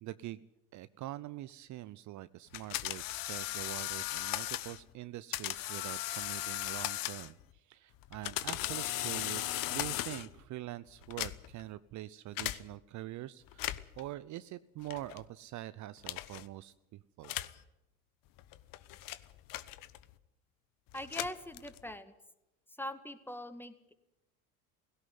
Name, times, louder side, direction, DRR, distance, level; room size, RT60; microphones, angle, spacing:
voice 1, 0.0-0.4 0.7-17.3, right 15 dB, 45° right, 15 dB, 0.7 m, -44 dB
sound 1, 2.5-4.8 5.3-7.4 8.0-10.4 11.0-11.6 12.4-12.6 13.5-14.0 14.9-15.2 16.0-16.4 17.2-17.6 18.4-20.1 20.9-21.9, left 16 dB, 50° left, 1.1 m, -37 dB
voice 2, 20.9-22.1 22.8-23.9, left 1 dB, 5° left, 11 dB, 1.9 m, -42 dB
17.0 x 17.0 x 9.5 m, 0.92 s
hypercardioid pair, 70°, 42 cm